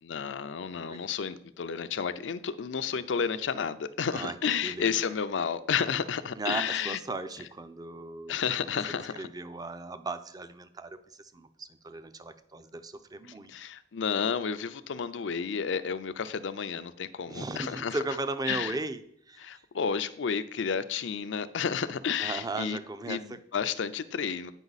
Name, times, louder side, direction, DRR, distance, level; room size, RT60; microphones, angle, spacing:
voice 1, 0.0-7.0 8.3-9.3 13.5-18.0 18.5-18.8 19.4-22.8 23.1-24.5, left 6 dB, 75° left, 0.5 m, -31 dB
voice 2, 2.9-3.2 4.1-4.3 4.6-4.9 6.4-8.4 9.2-13.5 17.3-19.0 19.3-19.4 22.2-23.4, right 2 dB, 20° right, 0.5 m, -37 dB
9.1 x 5.3 x 4.0 m
head